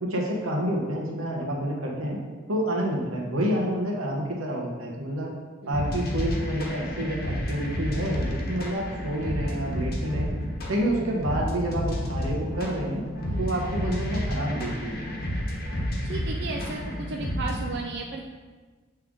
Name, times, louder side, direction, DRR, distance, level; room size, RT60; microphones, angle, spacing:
voice 1, 0.0-2.2 2.5-5.3 5.7-10.3 10.7-13.0 13.4-15.0, equal, 90° right, -2 dB, 1.2 m, -28 dB
voice 2, 5.6-5.9 13.3-13.5 16.0-18.3, right 3 dB, 55° right, 0 dB, 0.4 m, -35 dB
sound 1, 5.7-17.7, equal, 50° left, 1.0 m, -31 dB
7.5 x 3.4 x 3.6 m, 1.4 s
head